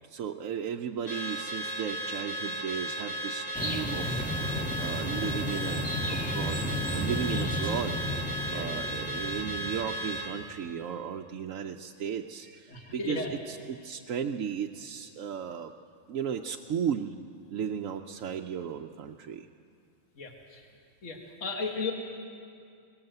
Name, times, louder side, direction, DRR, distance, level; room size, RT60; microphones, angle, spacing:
voice 1, 0.1-8.0 8.5-15.7 16.1-17.1 17.5-19.5, right 8 dB, 75° right, 2 dB, 1.1 m, -35 dB
Car / Alarm, 1.1-10.3, right 1 dB, 40° left, 3.7 m, -35 dB
sound 1, 3.5-10.4, equal, 5° left, 1.7 m, -33 dB
voice 2, 8.4-8.8 12.7-13.3 20.2-20.6 21.0-21.9, left 3 dB, 60° left, 1 dB, 2.1 m, -35 dB
20.5 x 20.0 x 7.9 m, 2.4 s
omnidirectional pair, 1.4 m